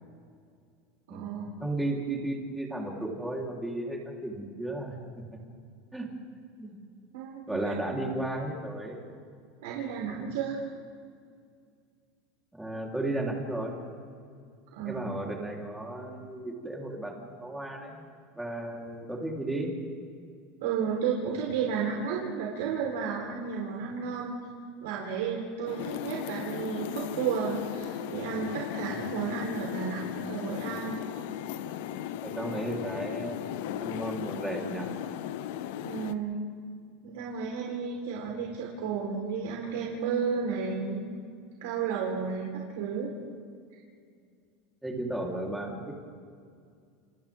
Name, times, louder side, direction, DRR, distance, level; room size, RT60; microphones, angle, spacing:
voice 1, 1.1-1.4 7.1-7.7 9.6-10.6 14.7-15.1 20.6-24.3 24.8-31.1 35.8-36.4 37.0-41.0 41.6-43.1, right 6 dB, 85° right, -3 dB, 4.1 m, -32 dB
voice 2, 1.6-5.2 5.9-6.1 6.6-6.8 7.5-9.1 12.5-13.8 14.8-18.0 18.3-19.7 28.9-29.0 32.2-33.4 33.8-34.9 44.8-46.0, right 1 dB, 5° right, -2 dB, 3.8 m, -34 dB
sound 1, 25.7-36.1, left 11 dB, 70° left, 0.9 m, -36 dB
30.0 x 28.5 x 3.7 m, 2.2 s
supercardioid pair, 155°, 0 cm